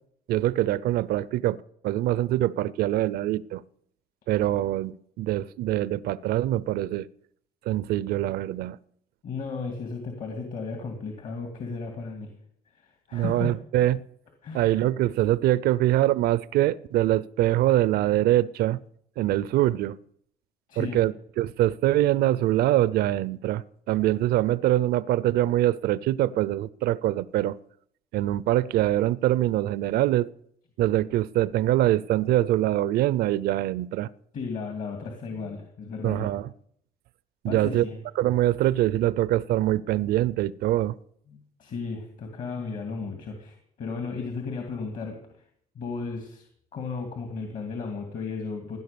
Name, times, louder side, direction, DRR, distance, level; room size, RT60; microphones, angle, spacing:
voice 1, 0.3-1.6 1.8-3.6 4.3-7.1 7.7-8.8 13.1-14.0 14.5-18.8 19.2-20.0 20.8-27.6 28.1-30.3 30.8-34.1 36.0-36.5 37.4-37.8 38.2-40.9, right 14 dB, 75° right, 0.5 m, -24 dB
voice 2, 9.2-12.3 12.7-13.5 14.4-14.7 20.7-21.0 34.3-36.3 37.4-38.0 41.3-45.5 45.7-46.5 46.7-48.8, left 4 dB, 55° left, 2.5 m, -35 dB
16.0 x 10.5 x 6.9 m
cardioid pair, 125°, 16 cm